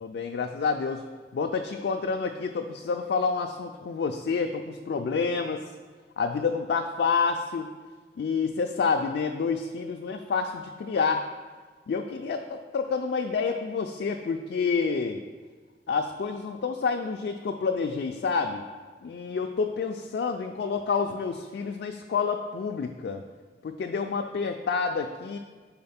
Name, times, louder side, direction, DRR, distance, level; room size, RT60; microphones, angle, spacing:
voice 1, 0.0-1.0 1.3-5.7 6.2-7.7 8.2-11.3 11.9-15.2 15.9-18.6 19.0-23.2 23.6-25.4, left 5 dB, 65° left, 4 dB, 0.3 m, -28 dB
4.3 x 4.0 x 5.6 m, 1.4 s
head